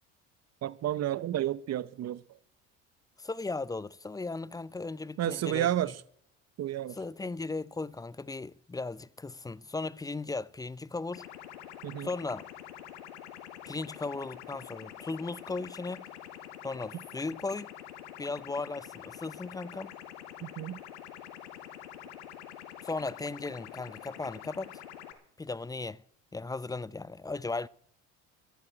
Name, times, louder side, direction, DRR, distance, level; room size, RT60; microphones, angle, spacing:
voice 1, 0.6-2.2 5.2-5.9 6.6-7.0 11.8-12.1 20.4-20.8, right 12 dB, 50° right, 0.8 m, -31 dB
voice 2, 3.2-5.9 6.9-11.3 12.0-12.5 13.6-16.1 16.6-17.7 18.2-19.9 22.8-24.8 25.4-26.0 26.3-27.7, left 3 dB, 10° left, 0.5 m, -37 dB
sound 1, 11.1-25.1, left 11 dB, 90° left, 1.9 m, -46 dB
14.0 x 8.3 x 8.8 m
supercardioid pair, 85°, 34 cm